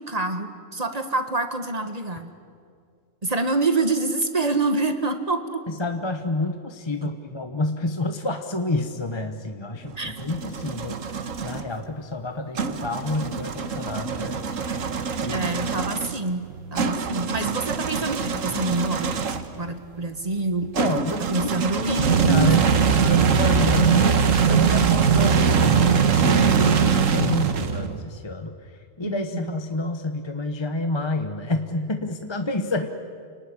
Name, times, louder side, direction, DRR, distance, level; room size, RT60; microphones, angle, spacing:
voice 1, 0.0-2.3 3.2-5.6 7.0-7.1 10.0-10.2 15.3-16.4 16.7-19.1 19.6-20.7 21.3-22.5 29.0-29.6, right 2 dB, 30° right, 7 dB, 1.6 m, -26 dB
voice 2, 5.7-14.4 15.2-15.7 20.8-21.5 21.9-32.9, left 2 dB, 25° left, 6 dB, 1.0 m, -29 dB
sound 1, 9.8-11.6 12.6-19.6 20.7-28.0, right 6 dB, 90° right, 1.6 m, -22 dB
29.0 x 19.0 x 10.0 m, 2.3 s
omnidirectional pair, 1.3 m